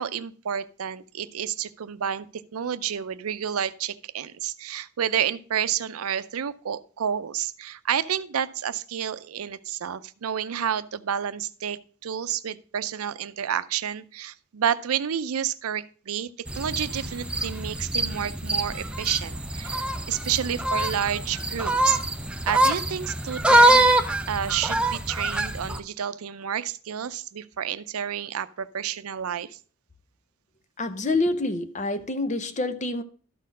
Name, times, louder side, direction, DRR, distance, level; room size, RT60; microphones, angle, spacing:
voice 1, 0.0-2.3 2.5-16.3 16.5-22.0 22.4-23.8 24.3-29.6, right 9 dB, 90° right, 0.5 m, -30 dB
sound 1, 16.5-25.8, right 1 dB, 5° right, 0.4 m, -24 dB
voice 2, 30.8-33.0, left 2 dB, 35° left, 0.7 m, -27 dB
12.5 x 4.3 x 5.3 m
head